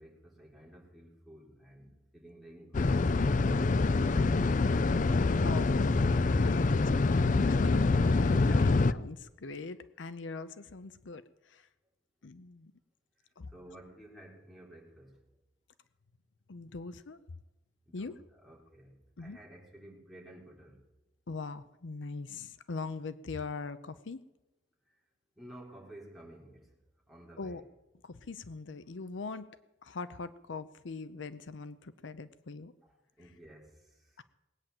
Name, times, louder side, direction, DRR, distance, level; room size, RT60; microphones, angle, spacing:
voice 1, 0.0-2.9 3.3-4.9 8.2-8.9 13.5-15.2 17.9-18.9 19.2-20.8 25.4-26.7 27.1-27.6 32.8-33.7, right 1 dB, ahead, -4 dB, 3.7 m, -52 dB
sound 1, 2.7-8.9, left 3 dB, 45° left, 0.5 m, -25 dB
voice 2, 5.4-6.8 7.5-11.2 11.5-11.7 12.2-12.7 13.4-13.5 16.5-17.2 17.9-18.1 19.2-19.4 21.3-24.2 27.4-27.6 28.0-29.5 29.8-32.7, left 4 dB, 80° left, 14 dB, 0.7 m, -41 dB
19.5 x 8.9 x 7.8 m, 1.0 s
head